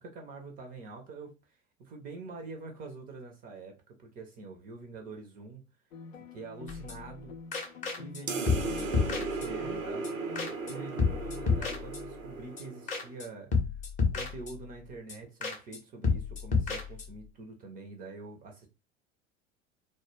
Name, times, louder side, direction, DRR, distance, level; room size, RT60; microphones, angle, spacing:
voice 1, 0.0-5.6 6.3-7.3 8.0-10.1 10.7-13.5 14.1-18.7, right 3 dB, 25° right, 0.4 m, -45 dB
sound 1, 5.9-11.7, left 4 dB, 85° left, 0.5 m, -48 dB
sound 2, 6.7-7.2 7.5-8.2 8.5-9.8 10.0-10.1 10.4-10.7 11.0-12.3 12.6-12.7 12.9-13.3 13.5-14.8 15.1-15.2 15.4-15.8 16.0-17.3, left 5 dB, 20° left, 0.6 m, -31 dB
sound 3, 8.3-13.1, right 3 dB, 85° right, 0.6 m, -36 dB
2.1 x 2.1 x 2.9 m
figure-of-eight pair, 80°, 39 cm